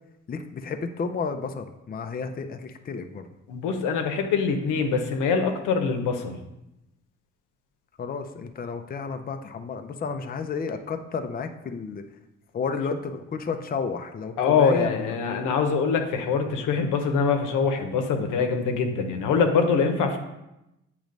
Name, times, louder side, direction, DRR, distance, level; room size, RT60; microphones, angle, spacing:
voice 1, 0.3-3.3 8.0-12.0 12.5-15.1, left 5 dB, 30° left, 7 dB, 0.5 m, -32 dB
voice 2, 3.5-6.4 14.4-20.2, left 5 dB, 90° left, 5 dB, 0.8 m, -24 dB
7.7 x 3.1 x 5.1 m, 0.92 s
cardioid pair, 90°, 30 cm